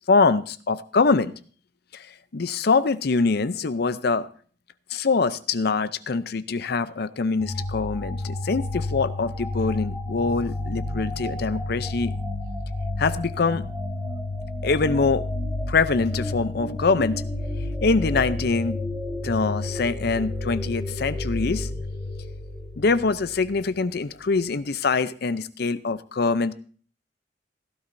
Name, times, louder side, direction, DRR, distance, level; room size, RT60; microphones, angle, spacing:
voice 1, 0.1-1.3 1.9-2.1 2.3-4.3 4.9-12.1 13.0-13.6 14.6-15.2 15.7-17.2 17.8-18.8 19.2-21.7 22.8-26.5, left 4 dB, 60° left, 14 dB, 0.6 m, -24 dB
sound 1, 7.4-23.7, left 2 dB, ahead, 1.8 m, -31 dB
17.0 x 12.0 x 2.7 m, 0.43 s
head